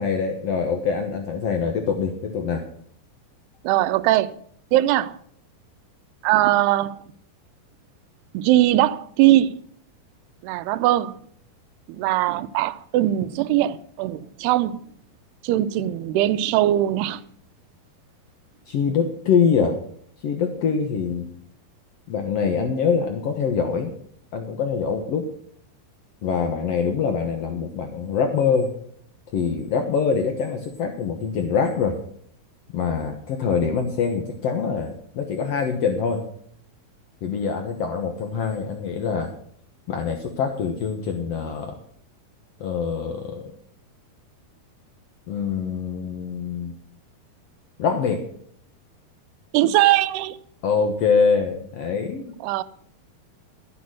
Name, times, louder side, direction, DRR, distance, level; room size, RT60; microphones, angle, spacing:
voice 1, 0.0-2.6 18.7-19.7 20.2-21.3 22.1-23.9 24.3-25.3 26.2-28.7 29.3-31.9 32.7-36.2 37.2-39.3 39.9-41.7 42.6-43.5 45.3-46.8 47.8-48.2 50.6-52.3, left 6 dB, 75° left, 1.4 m, -24 dB
voice 2, 3.6-4.4 4.7-5.2 6.2-7.0 8.3-9.6 10.4-11.2 11.9-14.8 15.4-17.2 49.5-50.4 52.4-52.6, right 14 dB, 85° right, 2.7 m, -20 dB
13.0 x 8.1 x 6.3 m
omnidirectional pair, 4.6 m